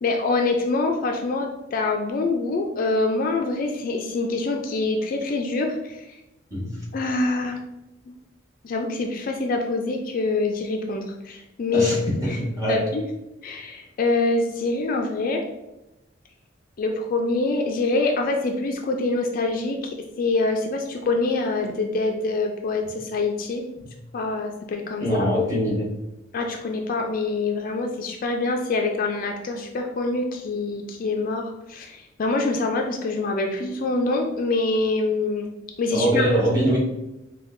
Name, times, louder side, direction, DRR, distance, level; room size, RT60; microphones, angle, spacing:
voice 1, 0.0-6.2 6.9-7.6 8.6-11.9 12.2-12.4 12.7-13.0 13.4-15.4 16.8-23.6 24.1-25.1 26.3-35.5 35.8-36.4, left 3 dB, 45° left, 3 dB, 0.4 m, -25 dB
voice 2, 11.7-12.8 25.0-25.9 35.9-36.8, equal, 15° right, -7 dB, 1.3 m, -22 dB
5.1 x 2.2 x 2.5 m, 0.95 s
head